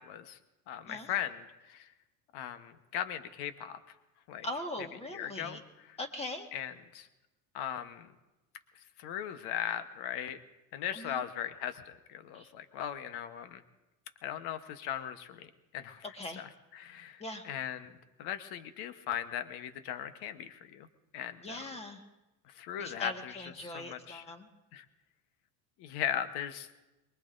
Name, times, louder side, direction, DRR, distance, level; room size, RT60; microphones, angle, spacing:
voice 1, 0.1-0.4 0.7-1.9 2.3-3.8 4.3-4.5 5.1-5.6 5.9-6.0 6.5-7.1 7.5-8.1 9.0-10.4 10.7-13.6 14.2-16.1 16.4-16.5 16.7-20.9 21.1-21.7 22.5-24.2 24.7-24.8 25.8-26.7, left 10 dB, 65° left, 10 dB, 1.1 m, -38 dB
voice 2, 4.4-5.6 6.0-6.5 10.9-11.2 12.3-12.5 16.1-16.5 17.2-17.5 21.4-22.0 22.8-24.5, left 1 dB, 15° left, 4 dB, 1.5 m, -41 dB
23.5 x 21.5 x 2.6 m, 1.0 s
cardioid pair, 125°, 43 cm